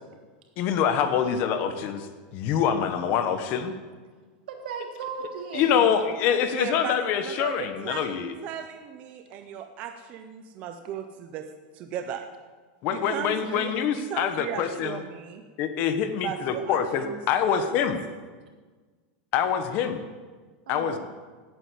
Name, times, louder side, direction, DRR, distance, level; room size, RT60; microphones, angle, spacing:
voice 1, 0.6-2.1 2.3-3.7 5.5-8.3 12.8-15.0 15.6-18.0 19.3-20.0 20.7-21.0, left 8 dB, 35° left, 9 dB, 1.2 m, -25 dB
voice 2, 4.5-6.0 20.7-21.0, right 6 dB, 80° right, 3 dB, 3.2 m, -36 dB
voice 3, 6.5-7.0 7.2-8.1 8.4-11.4 11.7-12.2 12.9-13.7 14.1-15.4 16.2-17.2 17.5-17.6, right 9 dB, 30° right, 6 dB, 0.8 m, -36 dB
17.0 x 9.3 x 8.5 m, 1.4 s
supercardioid pair, 180°, 5 cm